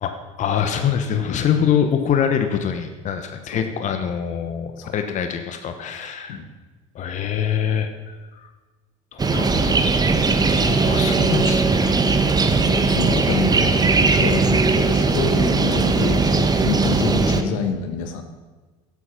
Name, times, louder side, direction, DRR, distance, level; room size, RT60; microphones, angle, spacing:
voice 1, 0.0-6.4 6.9-8.5 9.1-9.8 10.5-12.0 15.3-15.4, left 8 dB, 45° left, 7 dB, 1.1 m, -24 dB
sound 1, 9.2-17.4, right 4 dB, 25° right, 1.2 m, -19 dB
voice 2, 9.3-9.8 10.3-10.9 11.2-11.3 12.4-18.2, left 6 dB, 75° left, 6 dB, 1.4 m, -28 dB
12.0 x 8.3 x 5.8 m, 1.3 s
hypercardioid pair, 70°, 17 cm